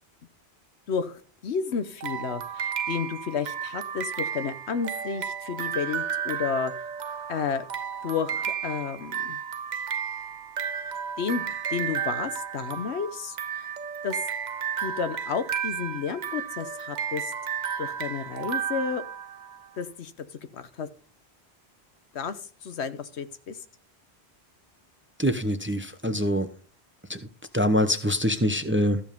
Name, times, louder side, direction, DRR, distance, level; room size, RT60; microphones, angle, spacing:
voice 1, 0.9-6.7 7.3-7.6 8.0-9.4 11.2-13.8 14.0-14.2 14.8-17.3 17.8-19.0 19.8-20.3 20.5-20.9 22.1-23.6, left 6 dB, 80° left, 11 dB, 1.2 m, -31 dB
sound 1, 2.0-19.7, right 8 dB, 50° right, 0.7 m, -33 dB
voice 2, 25.2-26.5 27.1-27.2 27.5-29.0, equal, 15° right, 9 dB, 0.7 m, -24 dB
14.0 x 5.3 x 5.2 m, 0.42 s
omnidirectional pair, 1.1 m